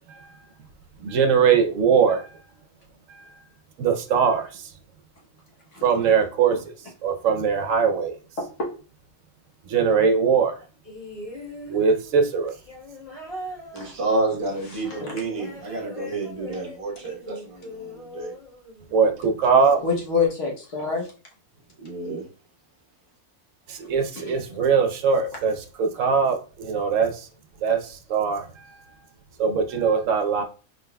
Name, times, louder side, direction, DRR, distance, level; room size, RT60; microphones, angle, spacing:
voice 1, 1.0-2.4 3.1-3.4 3.8-4.7 5.8-6.6 7.0-8.2 9.7-10.6 11.7-12.5 18.9-19.8 23.7-27.3 27.6-28.8 29.4-30.4, right 6 dB, 70° right, 6 dB, 1.0 m, -21 dB
voice 2, 8.4-8.7 13.8-13.9 14.8-15.2 19.8-21.1 24.3-24.4, left 5 dB, 60° left, -1 dB, 1.3 m, -26 dB
sound 1, 10.8-19.2 20.2-20.3, equal, 40° left, 2.2 m, -41 dB
voice 3, 13.7-18.3 21.8-22.2, right 2 dB, 25° right, -2 dB, 1.1 m, -29 dB
4.0 x 3.7 x 2.2 m, 0.36 s
omnidirectional pair, 1.5 m